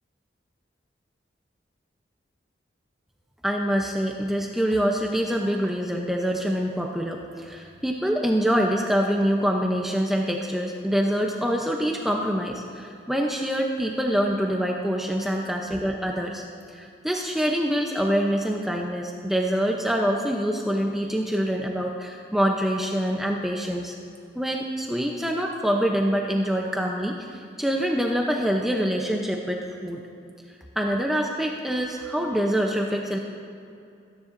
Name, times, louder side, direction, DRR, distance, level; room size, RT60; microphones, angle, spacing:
voice 1, 3.4-16.4 16.7-23.9 24.4-30.0 30.8-33.2, equal, ahead, 0 dB, 0.7 m, -25 dB
25.5 x 10.0 x 2.6 m, 2.5 s
head